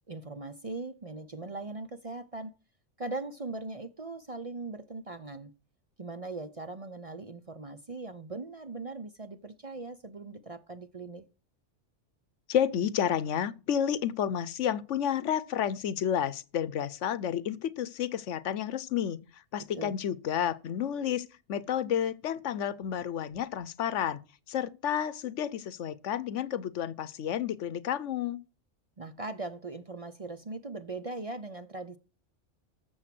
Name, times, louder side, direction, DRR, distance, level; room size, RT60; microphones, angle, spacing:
voice 1, 0.1-2.5 3.0-5.5 6.0-11.2 19.7-19.9 29.0-32.0, right 3 dB, 35° right, 0.6 m, -40 dB
voice 2, 12.5-24.2 24.5-28.4, left 9 dB, 75° left, 1.1 m, -31 dB
13.0 x 7.1 x 6.0 m
omnidirectional pair, 1.3 m